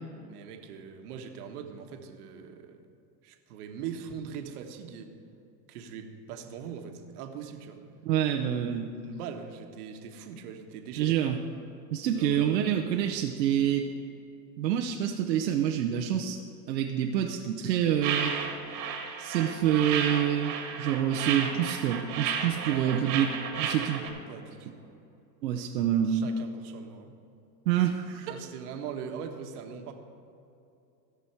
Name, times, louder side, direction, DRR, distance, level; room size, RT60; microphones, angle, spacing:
voice 1, 0.3-2.8 3.2-5.1 5.7-7.8 8.6-11.2 12.1-12.6 22.7-23.2 23.9-25.0 26.1-27.2 28.3-29.9, right 7 dB, 65° right, 4 dB, 1.4 m, -41 dB
voice 2, 8.0-8.9 11.0-11.4 11.9-13.9 14.6-16.4 16.7-18.4 19.2-23.3 23.6-24.0 25.4-26.3 27.7-28.3, right 10 dB, 90° right, 2 dB, 0.9 m, -27 dB
sound 1, 18.0-24.1, right 7 dB, 40° right, 1.7 m, -33 dB
17.0 x 6.2 x 4.5 m, 2.7 s
supercardioid pair, 120°, 49 cm